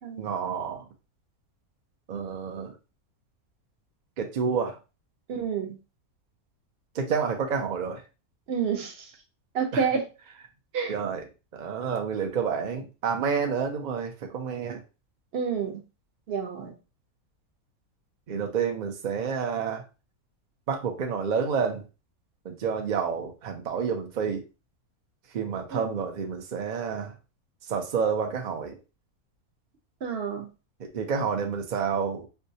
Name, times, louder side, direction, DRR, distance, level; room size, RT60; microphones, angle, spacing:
voice 1, 0.2-0.9 2.1-2.7 4.2-4.8 6.9-8.0 9.7-9.8 10.9-11.2 11.5-14.8 18.3-19.8 20.7-21.9 22.4-24.4 25.3-27.1 27.7-28.8 30.8-32.3, right 6 dB, 80° right, 3 dB, 0.4 m, -29 dB
voice 2, 5.3-5.8 8.5-9.1 9.5-10.1 10.7-10.9 15.3-15.8 16.3-16.7 25.7-26.0 30.0-30.5, right 6 dB, 55° right, 4 dB, 0.8 m, -29 dB
4.5 x 2.2 x 2.6 m, 0.30 s
omnidirectional pair, 1.5 m